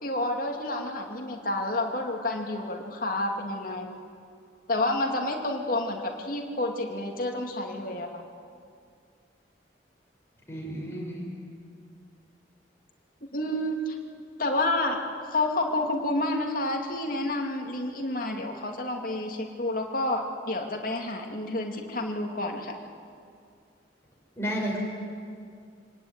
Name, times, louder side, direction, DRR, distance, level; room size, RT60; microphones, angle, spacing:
voice 1, 0.0-4.0 4.7-8.2 13.2-14.0 14.4-15.0 15.3-22.8, left 1 dB, 50° left, 2 dB, 2.5 m, -29 dB
voice 2, 10.5-11.2 24.4-24.8, right 1 dB, 15° left, -3 dB, 6.4 m, -31 dB
25.0 x 18.5 x 9.6 m, 2.3 s
head